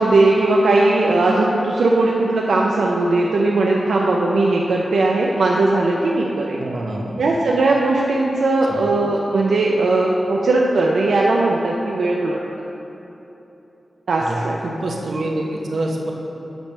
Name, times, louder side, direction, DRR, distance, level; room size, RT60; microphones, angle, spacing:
voice 1, 0.0-6.6 7.2-12.4 14.1-14.6, right 2 dB, 90° right, -2 dB, 0.5 m, -18 dB
voice 2, 6.6-7.2 8.7-8.8 14.2-16.1, right 1 dB, 70° right, -1 dB, 0.9 m, -26 dB
9.0 x 3.4 x 6.6 m, 3.0 s
wide cardioid pair, 115°, 0 cm